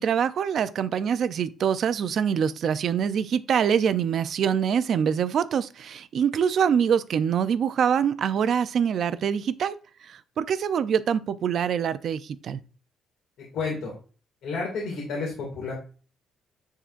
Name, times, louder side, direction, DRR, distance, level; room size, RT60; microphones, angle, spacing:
voice 1, 0.0-9.8 10.1-12.6, right 7 dB, 50° right, 0.4 m, -24 dB
voice 2, 13.4-13.9 14.4-15.7, left 4 dB, 70° left, 2.2 m, -31 dB
10.0 x 3.8 x 2.5 m
cardioid pair, 165°, 0 cm